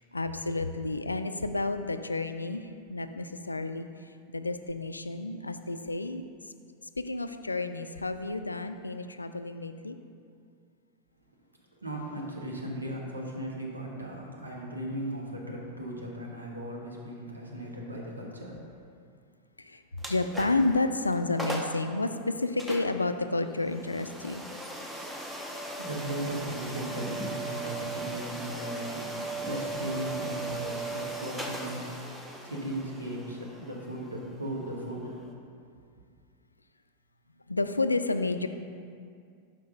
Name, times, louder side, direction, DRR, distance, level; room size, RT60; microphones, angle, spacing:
voice 1, 0.0-2.6 2.9-3.9 4.3-6.2 7.0-10.0 19.6-24.4 37.5-38.5, left 2 dB, 80° left, 9 dB, 0.3 m, -30 dB
voice 2, 11.7-18.6 25.8-32.1 32.4-35.5, right 1 dB, 80° right, -2 dB, 1.1 m, -37 dB
sound 1, 20.0-20.7 21.1-21.2 21.4-21.8 22.6-35.3, right 2 dB, 5° right, 0.7 m, -38 dB
5.7 x 5.2 x 5.1 m, 2.3 s
figure-of-eight pair, 90°, 0 cm